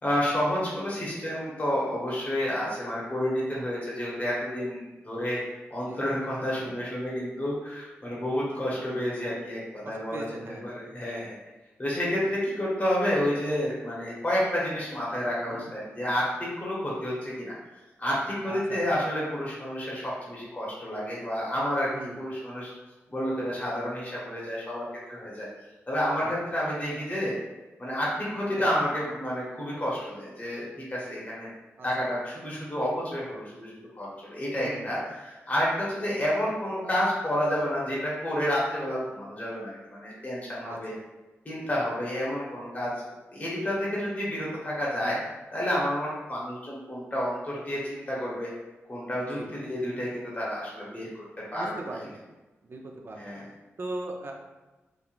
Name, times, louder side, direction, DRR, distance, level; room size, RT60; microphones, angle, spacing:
voice 1, 0.0-5.4 5.7-11.4 11.8-17.5 18.0-21.9 22.2-22.7 23.1-25.5 25.9-27.3 27.8-30.6 30.9-31.5 31.8-40.9 41.4-42.9 43.3-45.2 45.5-48.5 48.9-51.2 51.5-52.1 53.2-53.5, equal, 30° left, -6 dB, 1.0 m, -30 dB
voice 2, 9.8-10.7 15.5-15.7 18.5-18.8 21.9-22.2 26.2-26.3 28.6-28.7 31.8-31.9 34.6-34.8 40.6-41.0 45.0-45.2 49.3-49.5 51.5-52.2 52.6-53.2 53.8-54.3, right 2 dB, 45° right, 1 dB, 0.5 m, -39 dB
3.1 x 2.3 x 2.5 m, 1.1 s
cardioid pair, 65°, 5 cm